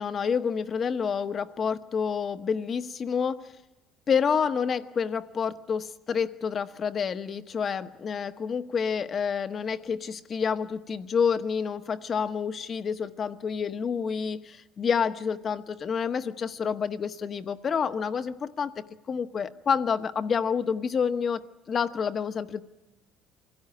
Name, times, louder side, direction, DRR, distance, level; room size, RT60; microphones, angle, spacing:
voice 1, 0.0-3.5 4.1-22.6, left 6 dB, 40° left, 10 dB, 1.1 m, -28 dB
25.0 x 16.5 x 9.6 m, 1.0 s
cardioid pair, 110°, 0 cm